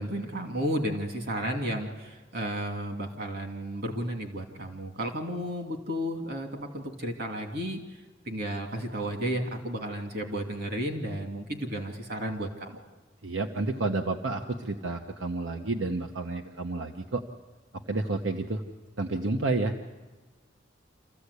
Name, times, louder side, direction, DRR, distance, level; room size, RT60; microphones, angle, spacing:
voice 1, 0.0-12.8, equal, 55° right, 3 dB, 2.6 m, -33 dB
voice 2, 13.2-17.2 17.7-18.6 19.0-19.8, right 2 dB, 85° right, 4 dB, 1.1 m, -30 dB
27.5 x 14.5 x 8.3 m, 1.3 s
head